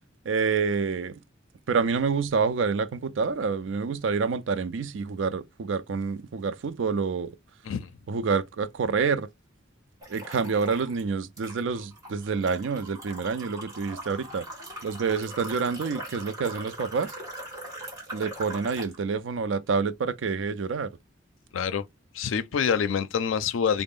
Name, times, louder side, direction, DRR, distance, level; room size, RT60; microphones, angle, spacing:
voice 1, 0.2-1.2 1.7-7.3 8.1-9.3 10.1-14.4 14.8-17.1 18.1-20.9, right 5 dB, 75° right, 0.4 m, -27 dB
sound 1, 10.0-11.0 11.4-19.0, right 1 dB, 20° right, 1.5 m, -41 dB
voice 2, 21.5-21.8 22.1-23.8, left 7 dB, 90° left, 0.4 m, -26 dB
3.9 x 2.0 x 3.6 m
head